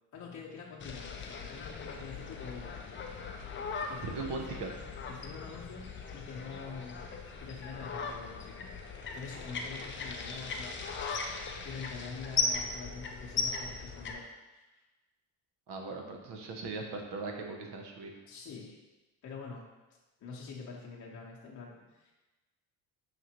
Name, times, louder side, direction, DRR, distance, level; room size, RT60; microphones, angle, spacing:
voice 1, 0.1-2.7 3.9-4.7 5.1-7.0 7.4-10.8 11.6-14.2 14.5-14.6 18.3-18.8 19.2-19.7 20.2-22.1, left 5 dB, 45° left, -4 dB, 0.8 m, -45 dB
sound 1, 0.8-14.1, left 4 dB, 30° left, 0.4 m, -38 dB
voice 2, 4.0-4.7 15.7-18.1, right 3 dB, 80° right, 2 dB, 0.8 m, -39 dB
5.8 x 2.5 x 2.9 m, 1.1 s
cardioid pair, 110°, 40 cm